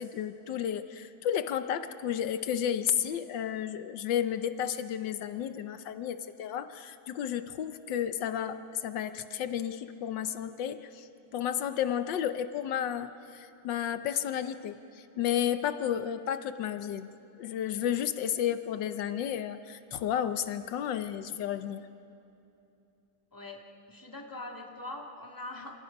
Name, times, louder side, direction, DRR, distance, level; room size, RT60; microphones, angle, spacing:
voice 1, 0.0-17.1 17.4-21.9, left 9 dB, 85° left, 10 dB, 1.5 m, -32 dB
voice 2, 23.3-25.8, left 2 dB, 10° left, 1 dB, 2.1 m, -42 dB
29.5 x 27.0 x 5.3 m, 2.8 s
omnidirectional pair, 1.9 m